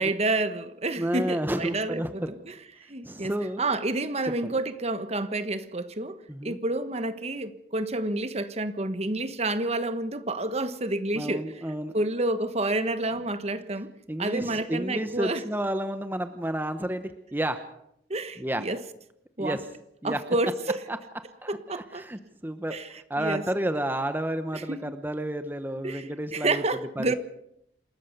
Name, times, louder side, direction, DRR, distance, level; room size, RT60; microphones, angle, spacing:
voice 1, 0.0-2.6 2.9-6.2 6.4-11.5 11.9-13.9 14.2-15.4 18.1-18.8 19.4-19.6 20.0-20.8 21.5-22.1 22.7-23.4 24.5-24.9 25.8-27.2, right 2 dB, 35° right, 1.3 m, -29 dB
voice 2, 1.0-2.3 3.0-3.6 4.2-4.5 6.3-6.6 11.1-12.0 14.1-17.6 18.4-18.6 19.4-19.6 20.0-20.2 20.9-21.0 21.4-22.8 23.1-26.6 27.0-27.1, right 1 dB, 10° right, 1.0 m, -31 dB
28.0 x 13.5 x 6.9 m
head